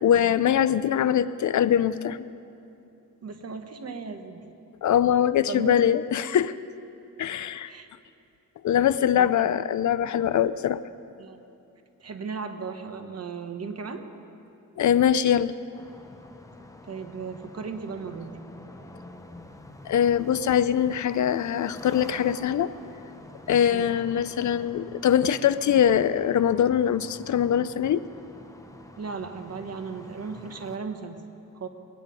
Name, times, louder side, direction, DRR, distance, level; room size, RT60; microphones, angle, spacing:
voice 1, 0.0-2.2 4.8-6.5 7.2-7.7 8.6-10.8 14.8-15.5 19.9-22.7 23.5-28.1, left 9 dB, 60° left, 15 dB, 0.5 m, -22 dB
voice 2, 3.2-4.5 5.5-5.8 7.6-7.9 9.1-9.5 11.2-11.4 12.0-14.1 16.9-18.3 23.7-23.9 29.0-31.2 31.5-31.7, right 5 dB, 50° right, 7 dB, 1.2 m, -36 dB
sound 1, 15.7-30.8, left 1 dB, 10° left, 0.9 m, -47 dB
21.5 x 9.3 x 5.3 m, 2.7 s
cardioid pair, 95°, 33 cm